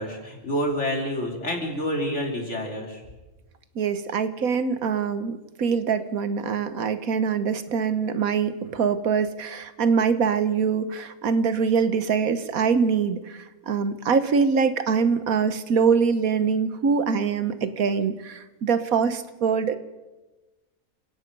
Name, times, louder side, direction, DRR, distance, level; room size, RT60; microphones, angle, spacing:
voice 1, 0.0-3.0, equal, 50° left, 1 dB, 3.9 m, -28 dB
voice 2, 3.7-19.7, right 6 dB, 75° right, 11 dB, 1.5 m, -24 dB
29.0 x 17.5 x 5.4 m, 1.1 s
omnidirectional pair, 1.5 m